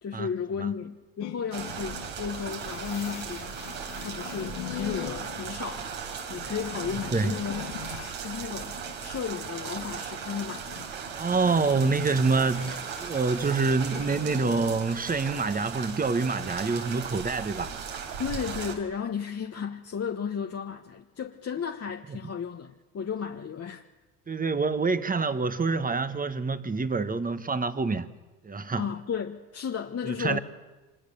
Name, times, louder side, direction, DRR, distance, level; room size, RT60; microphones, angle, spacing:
voice 1, 0.0-6.0 6.3-7.6 7.9-11.0 18.2-23.8 28.8-30.4, left 7 dB, 30° left, 1.3 m, -34 dB
sound 1, 1.2-8.2 8.5-15.4, left 13 dB, 85° left, 2.0 m, -43 dB
sound 2, 1.5-18.7, right 7 dB, 75° right, 4.3 m, -37 dB
voice 2, 11.2-17.7 24.3-28.1 28.4-28.8 30.0-30.4, right 4 dB, 20° right, 1.4 m, -26 dB
25.0 x 21.5 x 6.9 m
supercardioid pair, 90°, 47 cm